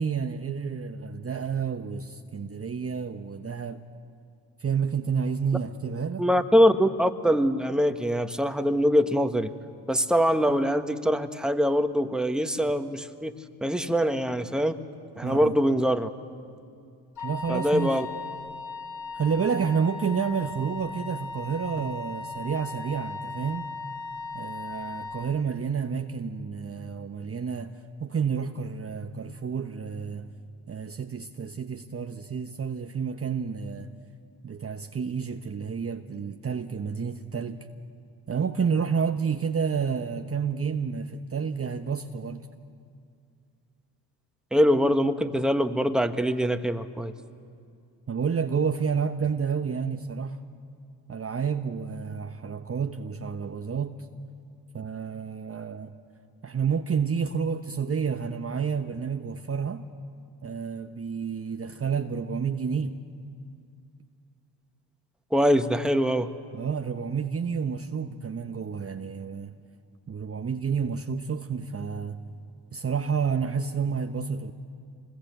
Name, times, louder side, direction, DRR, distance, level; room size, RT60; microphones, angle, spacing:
voice 1, 0.0-3.8 4.6-6.2 15.2-15.5 17.2-18.0 19.1-23.7 24.3-30.3 30.7-33.9 34.4-37.7 38.3-42.5 48.1-50.4 51.1-54.1 54.7-55.9 56.4-59.9 60.4-63.0 66.5-69.6 70.1-72.2 72.7-74.5, right 6 dB, 30° right, 1.1 m, -30 dB
voice 2, 6.2-9.5 9.9-13.3 13.6-14.8 15.2-16.1 17.5-18.0 44.5-47.1 65.3-66.3, equal, ahead, 1.6 m, -23 dB
Wind instrument woodwind instrument, 17.2-25.3, left 4 dB, 45° left, 4.1 m, -37 dB
26.0 x 20.5 x 8.0 m
hypercardioid pair, 50°, 49 cm